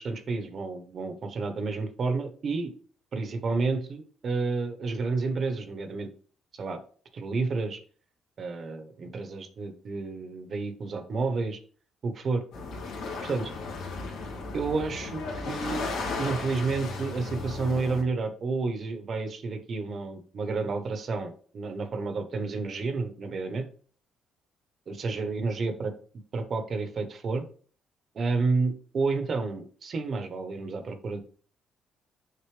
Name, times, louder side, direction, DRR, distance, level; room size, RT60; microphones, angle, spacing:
voice 1, 0.0-2.7 3.1-6.1 6.5-6.8 7.1-7.8 8.4-11.6 12.0-12.4 13.2-13.5 14.5-15.8 16.2-23.7 24.9-25.9 26.3-27.4 28.1-31.2, right 4 dB, 40° right, 8 dB, 1.0 m, -30 dB
sound 1, 12.5-18.0, left 3 dB, 80° left, 2.3 m, -35 dB
6.8 x 5.4 x 3.3 m, 0.43 s
cardioid pair, 135°, 0 cm